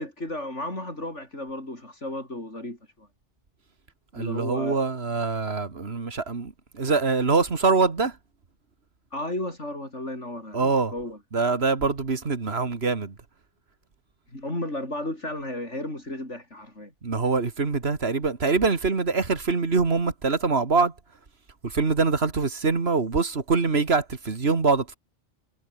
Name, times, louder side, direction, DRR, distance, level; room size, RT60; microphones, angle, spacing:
voice 1, 0.0-3.1 4.1-4.8 9.1-11.2 14.3-16.9, left 1 dB, 80° left, 8.6 m, -34 dB
voice 2, 4.1-8.2 10.5-10.9 11.3-13.1 17.0-20.9 21.6-25.0, right 4 dB, 60° right, 2.2 m, -24 dB
omnidirectional pair, 1.2 m